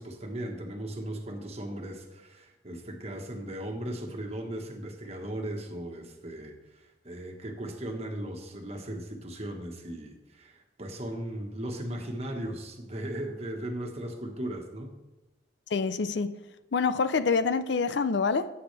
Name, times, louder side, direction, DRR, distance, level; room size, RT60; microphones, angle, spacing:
voice 1, 0.0-14.9, right 1 dB, 35° right, 1.4 m, -37 dB
voice 2, 15.7-16.4 16.7-18.5, left 4 dB, 75° left, 0.5 m, -26 dB
17.0 x 7.9 x 3.4 m
head